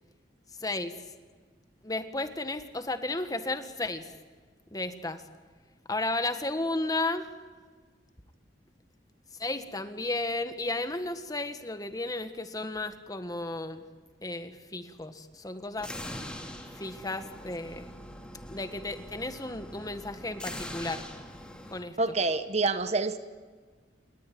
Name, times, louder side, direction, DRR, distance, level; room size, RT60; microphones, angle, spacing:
voice 1, 0.6-1.0 1.8-4.1 4.7-5.2 5.9-7.3 9.4-13.8 14.2-15.9 16.7-17.9 18.5-21.1 21.7-22.0, left 2 dB, 20° left, 9 dB, 1.6 m, -33 dB
sound 1, 15.8-21.8, left 1 dB, 5° left, 2.9 m, -42 dB
voice 2, 22.0-23.2, right 3 dB, 40° right, 11 dB, 1.2 m, -27 dB
28.5 x 21.0 x 9.3 m, 1.5 s
head